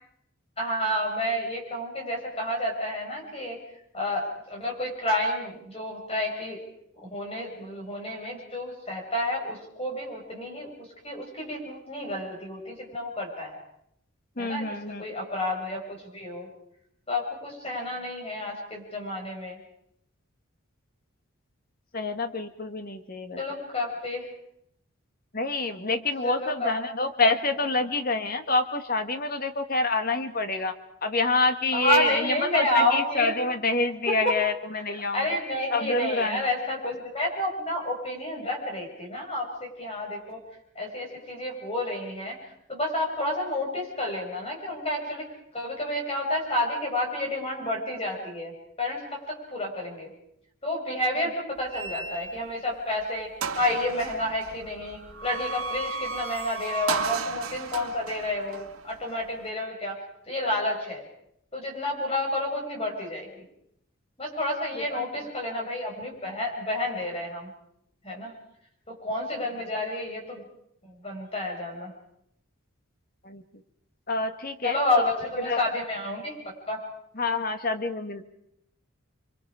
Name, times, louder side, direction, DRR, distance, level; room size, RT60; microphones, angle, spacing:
voice 1, 0.6-3.6 3.9-6.6 7.0-13.6 14.4-16.5 17.1-19.6 23.4-24.3 26.2-26.7 31.7-33.3 34.2-34.4 35.1-40.4 40.7-42.3 42.7-45.2 45.5-50.1 50.6-60.0 60.2-61.0 61.5-63.4 64.2-67.5 68.0-68.3 68.9-70.4 70.8-71.9 74.6-76.4 76.6-76.8, left 1 dB, 25° left, 0 dB, 6.4 m, -30 dB
voice 2, 14.4-15.0 21.9-23.4 25.3-30.7 31.0-35.3 35.7-36.5 64.7-65.3 73.2-73.4 74.1-74.8 75.4-75.6 77.1-78.2, left 3 dB, 45° left, 8 dB, 1.7 m, -27 dB
sound 1, 51.7-52.6 53.0-53.1 53.4-59.5, right 4 dB, 85° right, 2.0 m, -34 dB
29.5 x 24.5 x 5.0 m, 0.75 s
head